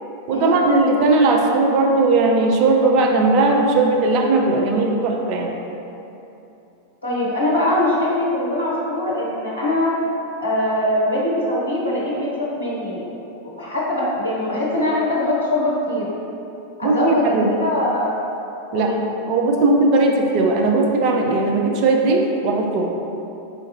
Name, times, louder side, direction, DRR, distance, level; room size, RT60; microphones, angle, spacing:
voice 1, 0.3-5.5 16.8-17.5 18.7-18.9 19.3-22.9, right 3 dB, 40° right, 1 dB, 0.5 m, -18 dB
voice 2, 7.0-9.9 10.4-13.0 13.4-16.1 16.8-18.1 18.7-19.1, left 1 dB, 75° left, -6 dB, 0.7 m, -22 dB
4.4 x 3.5 x 2.7 m, 2.9 s
figure-of-eight pair, 90°, 0 cm